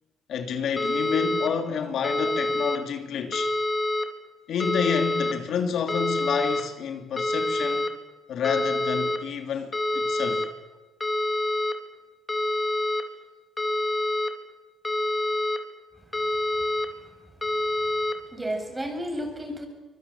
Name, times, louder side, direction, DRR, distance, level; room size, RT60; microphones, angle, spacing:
voice 1, 0.3-3.5 4.5-7.9 8.3-10.5, left 7 dB, 70° left, 2.9 m, -29 dB
sound 1, 0.8-1.5 2.0-2.8 3.3-4.1 4.6-5.3 5.9-6.6 7.2-7.9 8.4-9.2 9.7-10.5 11.0-11.7 12.3-13.0 13.6-14.3 14.8-15.6 16.1-16.9 17.4-18.1, left 1 dB, 20° left, 3.5 m, -26 dB
voice 2, 16.6-17.1 17.5-17.6 18.3-19.7, equal, 15° right, 7.4 m, -33 dB
24.5 x 22.0 x 8.7 m
cardioid pair, 90°, 0 cm